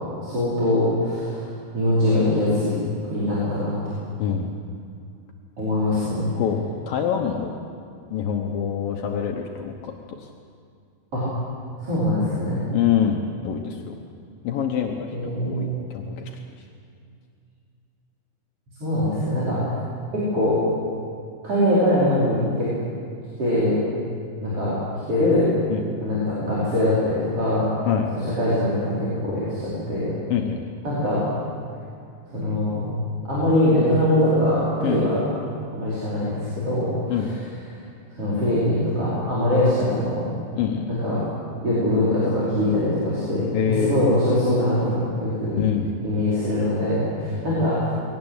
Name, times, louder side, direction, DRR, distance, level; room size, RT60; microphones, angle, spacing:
voice 1, 0.2-1.4 1.7-2.8 3.0-3.7 5.6-6.4 11.1-11.2 11.8-12.6 15.1-15.8 18.8-19.7 20.1-20.6 21.4-22.7 23.4-23.8 24.4-24.8 25.1-25.5 26.0-27.7 28.4-30.1 30.8-31.3 32.3-32.9 33.2-35.2 35.7-36.9 38.2-40.3 40.9-41.2 41.6-45.6 46.0-47.9, left 1 dB, 35° right, -10 dB, 5.7 m, -22 dB
voice 2, 4.2-4.5 6.4-7.5 8.1-10.3 12.7-13.9 14.4-16.4 19.5-19.8 25.7-25.8 27.8-28.1 30.3-30.7 34.8-35.0 37.1-37.3 39.5-39.6 40.5-40.9 43.5-44.1 45.5-45.9, left 8 dB, 70° left, 2 dB, 2.7 m, -25 dB
21.5 x 18.5 x 8.0 m, 2.3 s
omnidirectional pair, 4.4 m